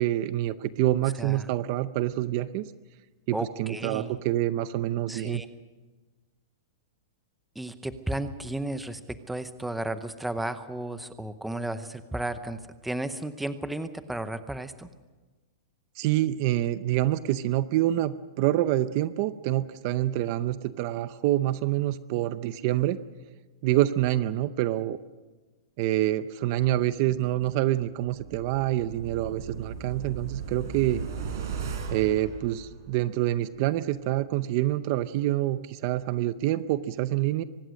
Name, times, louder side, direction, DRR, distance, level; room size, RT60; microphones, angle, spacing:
voice 1, 0.0-2.7 3.3-5.4 16.0-23.0 23.6-25.0 25.8-31.0 31.9-37.4, right 14 dB, 35° right, 14 dB, 0.6 m, -26 dB
voice 2, 3.3-4.1 5.1-5.5 7.6-14.9, right 1 dB, ahead, 10 dB, 0.8 m, -34 dB
sound 1, 28.0-33.2 33.5-33.6, right 5 dB, 55° right, 5.1 m, -37 dB
24.0 x 19.5 x 6.4 m, 1.3 s
supercardioid pair, 170°, 2 cm